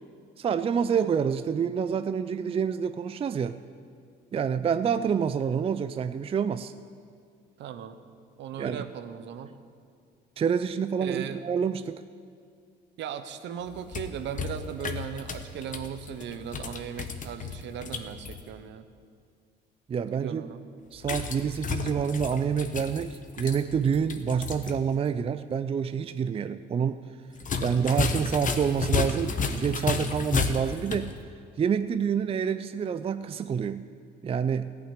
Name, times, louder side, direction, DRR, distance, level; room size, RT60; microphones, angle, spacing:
voice 1, 0.4-3.6 4.3-6.7 8.6-8.9 10.4-12.0 19.9-20.4 20.9-27.0 27.6-31.1 31.6-33.8 34.2-34.7, right 7 dB, 30° right, 11 dB, 0.4 m, -27 dB
voice 2, 7.6-8.0 8.4-9.5 11.0-11.4 13.0-18.8 20.0-20.6 27.7-28.1, right 8 dB, 70° right, 10 dB, 0.9 m, -37 dB
sound 1, 13.7-18.4 21.0-24.7 25.0-25.1 27.4-31.1, left 5 dB, 40° left, 1.1 m, -32 dB
14.5 x 6.0 x 9.9 m, 2.2 s
cardioid pair, 85°, 19 cm